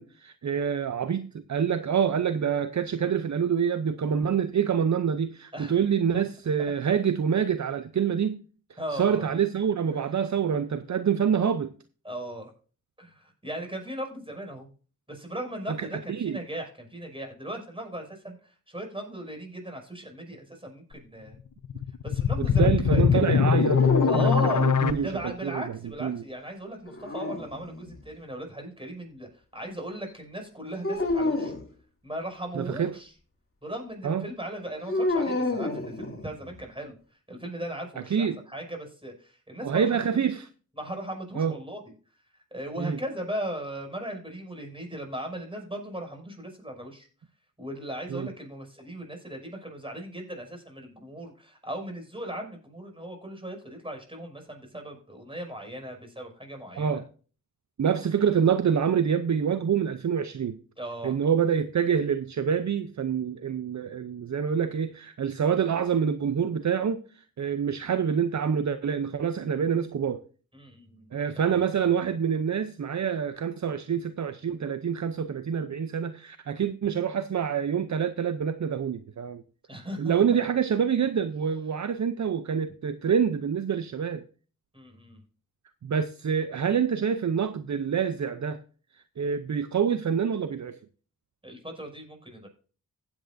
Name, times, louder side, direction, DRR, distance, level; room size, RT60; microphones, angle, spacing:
voice 1, 0.0-8.4 8.9-11.7 15.8-16.4 22.4-25.6 26.0-26.2 32.6-33.0 34.0-34.2 38.1-38.4 39.6-40.5 41.4-41.5 42.8-43.0 48.1-48.3 56.8-57.0 57.8-60.6 61.0-70.2 71.1-79.4 80.0-84.2 85.8-88.6 89.2-90.8, right 7 dB, 55° right, 0.6 m, -26 dB
voice 2, 8.8-9.3 12.0-12.5 13.0-14.7 15.1-21.4 22.0-23.4 24.1-24.7 25.0-31.5 32.0-33.1 33.6-40.2 40.8-41.8 42.3-47.1 47.6-57.0 60.8-61.2 70.5-71.9 79.7-80.2 84.7-85.2 91.4-92.5, right 1 dB, 15° right, 5.9 m, -38 dB
sound 1, 21.6-24.9, left 7 dB, 60° left, 0.8 m, -22 dB
sound 2, 23.6-25.2 26.9-28.0 30.8-31.6 34.9-36.5, left 2 dB, 40° left, 2.6 m, -29 dB
15.5 x 8.9 x 2.6 m
cardioid pair, 55°, 35 cm